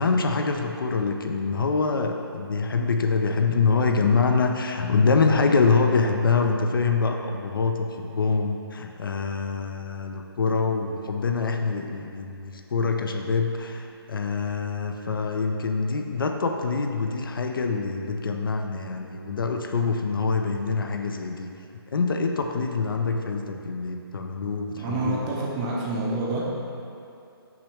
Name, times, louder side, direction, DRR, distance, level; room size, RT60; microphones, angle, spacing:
voice 1, 0.0-21.5 21.9-25.2, left 4 dB, 60° left, 4 dB, 0.5 m, -25 dB
voice 2, 24.8-26.8, right 2 dB, 15° right, -4 dB, 0.6 m, -28 dB
5.9 x 5.2 x 3.3 m, 2.7 s
figure-of-eight pair, 155°, 13 cm